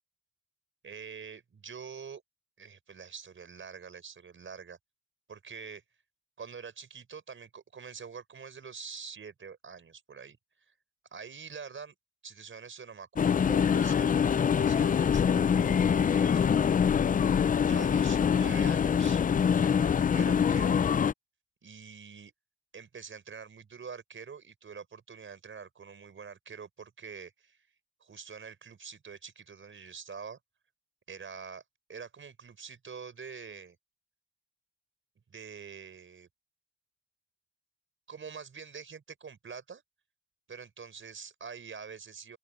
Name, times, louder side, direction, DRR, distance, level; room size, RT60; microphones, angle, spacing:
voice 1, 0.8-2.2 2.6-4.8 5.3-5.8 6.4-10.7 11.1-12.0 12.2-16.7 17.6-19.2 19.6-20.8 21.6-22.3 22.7-27.7 28.0-30.4 31.1-31.6 31.9-33.8 35.3-36.3 38.1-39.8 40.5-42.4, right 6 dB, 40° right, 5.0 m, -45 dB
sound 1, 13.2-21.1, left 7 dB, 30° left, 0.4 m, -25 dB
open air
cardioid pair, 90°, 30 cm